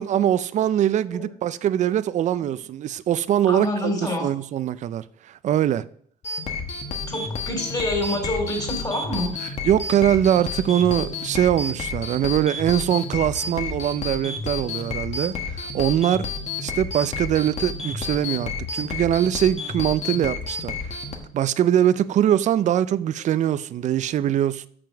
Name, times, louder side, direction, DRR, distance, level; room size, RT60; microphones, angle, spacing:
voice 1, 0.0-3.7 4.0-5.9 9.6-16.3 16.6-20.7 21.3-24.7, right 11 dB, 45° right, 0.4 m, -22 dB
voice 2, 3.5-4.3 7.1-9.3, left 1 dB, 20° left, 3.1 m, -27 dB
sound 1, 6.2-21.2, left 4 dB, 40° left, 1.4 m, -31 dB
6.8 x 6.1 x 5.9 m
cardioid pair, 110°, 17 cm